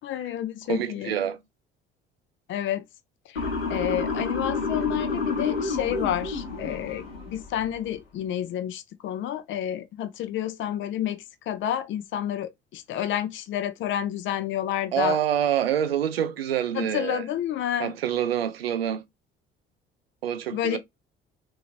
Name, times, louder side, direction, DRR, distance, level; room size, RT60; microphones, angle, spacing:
voice 1, 0.0-1.2 2.5-2.8 3.3-15.2 16.7-17.9 20.5-20.8, left 11 dB, 40° left, 0.6 m, -30 dB
voice 2, 0.7-1.4 14.9-17.2 17.8-19.0 20.2-20.8, right 9 dB, 80° right, 0.5 m, -26 dB
Motor vehicle (road) / Siren, 3.3-7.5, left 4 dB, 80° left, 1.2 m, -29 dB
3.9 x 2.7 x 2.4 m
figure-of-eight pair, 55°, 29 cm